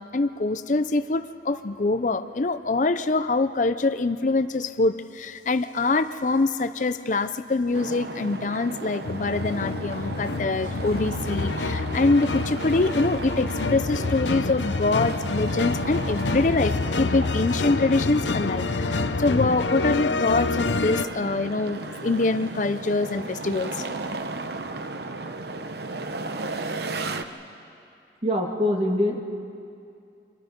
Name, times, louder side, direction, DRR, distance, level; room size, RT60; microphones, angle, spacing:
voice 1, 0.0-23.9, left 3 dB, 45° left, 11 dB, 0.5 m, -24 dB
sound 1, 7.7-27.2, right 2 dB, 65° right, 0.9 m, -35 dB
sound 2, 9.0-21.1, left 3 dB, 85° left, 0.7 m, -27 dB
voice 2, 28.2-29.2, left 1 dB, 30° right, 2 dB, 2.0 m, -23 dB
29.0 x 25.5 x 5.2 m, 2.5 s
head